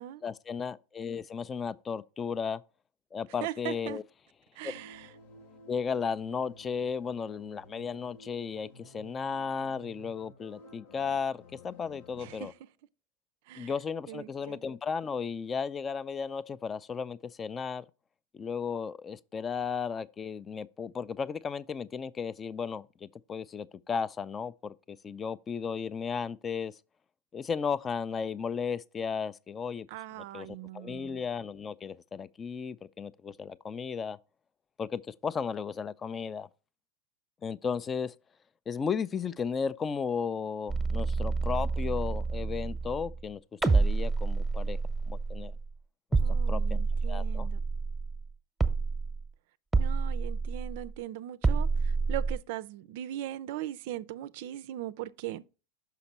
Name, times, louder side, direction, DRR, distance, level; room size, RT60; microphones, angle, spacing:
voice 1, 0.2-2.6 3.1-4.0 4.6-4.8 5.7-12.5 13.6-17.9 18.3-26.7 27.3-29.9 30.3-30.5 30.7-34.2 34.8-36.5 37.4-38.1 38.7-43.4 43.7-44.8 45.1-45.5 46.3-47.5, left 6 dB, 25° left, 0.4 m, -34 dB
voice 2, 3.4-4.0 4.6-5.1 12.2-12.5 13.5-13.7 14.1-14.6 29.9-31.2 46.2-47.6 49.8-55.5, right 13 dB, 60° right, 0.4 m, -39 dB
sound 1, 4.6-12.5, left 1 dB, 65° left, 1.1 m, -53 dB
sound 2, 40.7-43.3 43.6-45.7 46.1-48.3 48.6-49.3 49.7-51.0 51.4-52.4, right 4 dB, 5° right, 0.9 m, -29 dB
5.9 x 5.8 x 4.1 m
hypercardioid pair, 90°, 0 cm